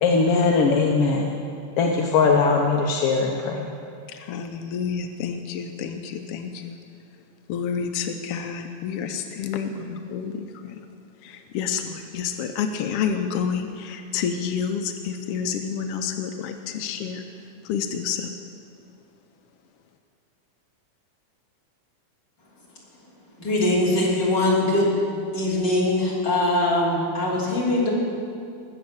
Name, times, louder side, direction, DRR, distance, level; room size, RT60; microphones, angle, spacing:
voice 1, 0.0-1.3 1.8-3.7, left 4 dB, 65° left, 1 dB, 1.6 m, -20 dB
voice 2, 4.1-6.8 7.5-10.8 11.2-17.2 17.6-18.4, left 7 dB, 80° left, 6 dB, 1.3 m, -29 dB
voice 3, 23.4-25.0 25.3-27.9, left 1 dB, 35° left, -5 dB, 3.8 m, -22 dB
21.0 x 7.7 x 7.1 m, 2.4 s
omnidirectional pair, 3.5 m